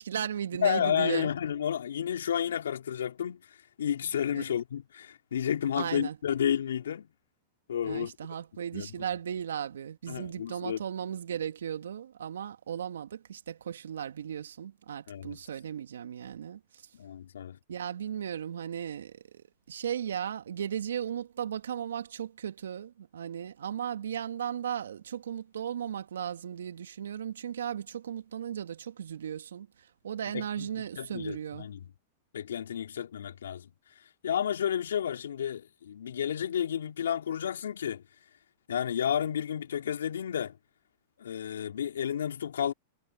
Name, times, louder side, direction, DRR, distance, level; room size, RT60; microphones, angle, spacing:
voice 1, 0.0-1.3 4.3-4.4 5.8-6.2 7.8-16.6 17.7-29.7 30.0-31.7, right 9 dB, 75° right, 2.5 m, -36 dB
voice 2, 0.6-7.1 7.7-8.1 8.7-8.9 10.1-10.8 15.1-15.4 16.9-17.6 30.3-30.7 31.0-31.9 32.3-33.7 34.2-38.0 38.7-40.6 41.2-42.7, left 9 dB, 75° left, 3.8 m, -31 dB
hypercardioid pair, 105°, 0 cm